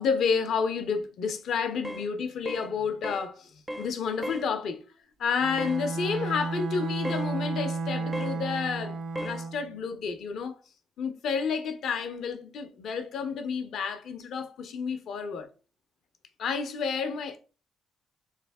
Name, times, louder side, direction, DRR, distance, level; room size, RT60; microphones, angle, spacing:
voice 1, 0.0-4.8 5.2-10.6 11.0-15.5 16.4-17.4, left 6 dB, 70° left, 0.6 m, -30 dB
sound 1, 1.8-2.1 2.5-2.7 3.0-3.3 3.7-3.9 4.2-4.5 5.6-5.8 7.0-7.3 8.1-8.4 9.1-9.4, equal, 10° right, 0.3 m, -35 dB
Bowed string instrument, 5.4-9.7, right 3 dB, 80° right, 0.6 m, -32 dB
3.4 x 3.2 x 3.4 m
cardioid pair, 125°, 0 cm